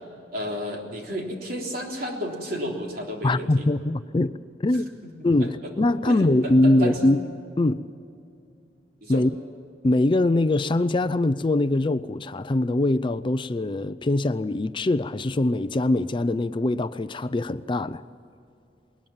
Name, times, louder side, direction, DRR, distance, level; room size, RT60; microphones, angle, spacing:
voice 1, 0.3-3.7 5.4-5.7 6.0-7.1 9.0-9.2, equal, 55° right, 3.6 m, -32 dB
voice 2, 3.2-4.3 4.6-4.9 5.2-7.2 7.6-7.8 9.1-9.3 9.8-18.0, left 2 dB, 30° left, 0.4 m, -22 dB
20.5 x 20.0 x 7.2 m
head